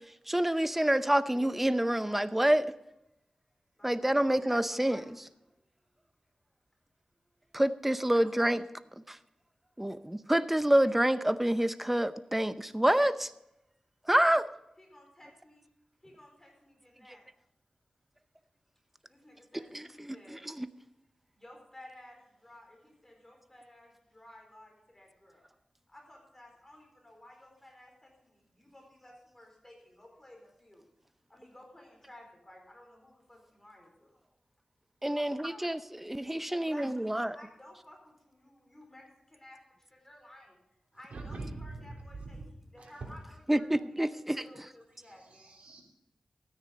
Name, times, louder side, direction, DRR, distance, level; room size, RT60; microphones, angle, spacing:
voice 1, 0.3-2.7 3.8-5.0 7.5-8.6 9.1-9.2 9.8-13.3 14.1-14.5 19.5-20.7 35.0-37.3 43.5-44.4, right 1 dB, 10° right, 13 dB, 0.6 m, -27 dB
voice 2, 3.8-4.4 4.7-5.2 8.0-8.5 14.8-15.7 16.0-17.2 19.1-20.4 21.3-25.5 25.9-30.8 31.3-34.1 35.1-35.7 36.5-39.6 39.9-40.6 40.9-42.4 42.7-45.6, left 1 dB, 20° left, 1 dB, 4.3 m, -55 dB
voice 3, 41.1-42.4 42.8-43.1 45.0-45.8, right 3 dB, 85° right, 0 dB, 3.2 m, -43 dB
13.5 x 9.7 x 5.2 m, 0.86 s
wide cardioid pair, 75°, 2 cm